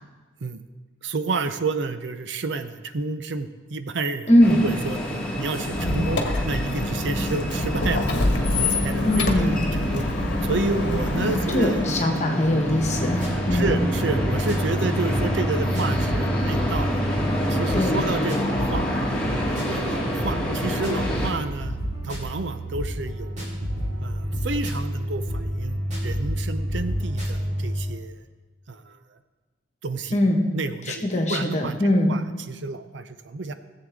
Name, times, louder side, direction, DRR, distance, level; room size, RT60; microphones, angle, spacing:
voice 1, 1.0-5.0 5.4-8.1 8.6-10.1 10.4-12.0 13.5-17.0 17.5-19.1 19.6-21.8 22.0-23.4 24.0-28.2 28.7-29.0 29.8-30.2 30.5-31.0 31.3-32.2 32.5-33.5, right 3 dB, 65° right, 10 dB, 0.6 m, -30 dB
voice 2, 4.3-4.6 9.0-9.6 11.2-13.7 17.7-18.1 30.1-30.4 30.9-32.1, left 1 dB, 35° left, 3 dB, 1.3 m, -21 dB
sound 1, 4.4-21.3, equal, 5° left, 1.9 m, -28 dB
Squeak, 5.6-12.1, left 2 dB, 60° left, 1.2 m, -26 dB
sound 2, 12.7-27.9, equal, 35° right, 2.3 m, -29 dB
17.0 x 7.7 x 3.6 m, 1.3 s
head